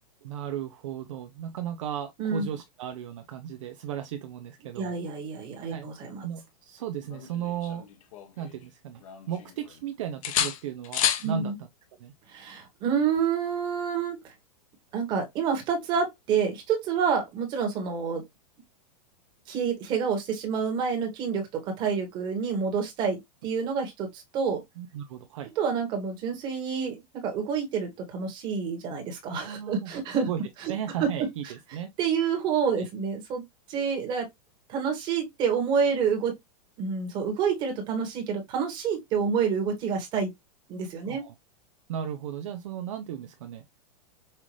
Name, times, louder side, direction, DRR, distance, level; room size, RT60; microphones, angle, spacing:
voice 1, 0.2-4.9 5.7-5.9 6.2-7.8 8.4-11.5 12.0-12.1 24.8-25.5 29.4-29.9 30.2-30.4 30.7-31.9 32.2-32.3 32.7-32.9 41.0-41.3 41.9-43.8, right 9 dB, 50° right, 0.6 m, -35 dB
voice 2, 4.8-6.2 11.2-11.6 12.3-14.2 14.9-18.2 19.5-24.6 25.6-30.3 30.6-30.7 31.0-31.1 32.0-33.4 33.7-34.3 34.7-36.4 36.8-40.3 40.7-41.3, right 6 dB, 20° right, 1.4 m, -28 dB
sound 1, 7.1-8.6 9.0-9.8 10.2-11.3 13.2-13.4, left 9 dB, 55° left, 1.0 m, -31 dB
5.6 x 2.5 x 3.1 m
supercardioid pair, 175°, 20 cm